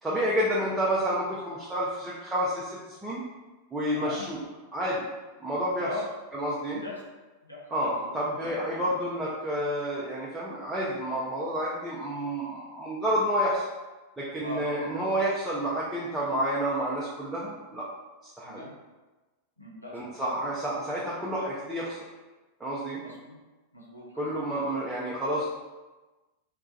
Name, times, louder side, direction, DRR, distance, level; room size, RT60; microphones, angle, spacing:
voice 1, 0.0-3.2 3.7-4.4 4.7-5.1 5.4-5.9 6.3-6.8 7.7-13.6 14.2-17.9 18.4-18.6 19.9-22.0 22.6-23.0 24.2-25.5, equal, 10° right, -8 dB, 0.5 m, -29 dB
voice 2, 3.9-4.2 5.8-6.1 6.8-6.9 7.4-7.6 7.9-8.2 14.4-14.6 18.4-18.7 19.6-20.0 23.0-23.4 23.7-24.2, left 1 dB, 85° left, -3 dB, 0.6 m, -39 dB
2.3 x 2.3 x 3.9 m, 1.2 s
figure-of-eight pair, 90°, 0 cm